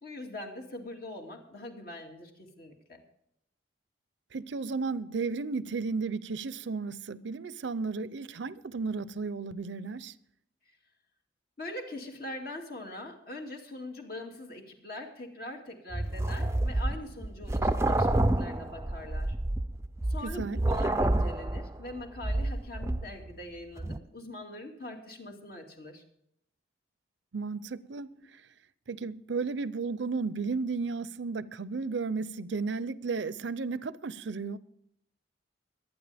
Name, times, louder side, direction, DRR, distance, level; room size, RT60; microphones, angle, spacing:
voice 1, 0.0-3.0 11.6-19.4 20.1-26.0, left 1 dB, 50° left, 2.4 m, -42 dB
voice 2, 4.3-10.1 20.2-20.6 27.3-28.4 28.9-34.6, right 4 dB, 70° right, 0.6 m, -34 dB
sound 1, 15.9-23.4 23.8-24.0, right 1 dB, 15° right, 0.5 m, -29 dB
23.5 x 9.4 x 3.5 m
head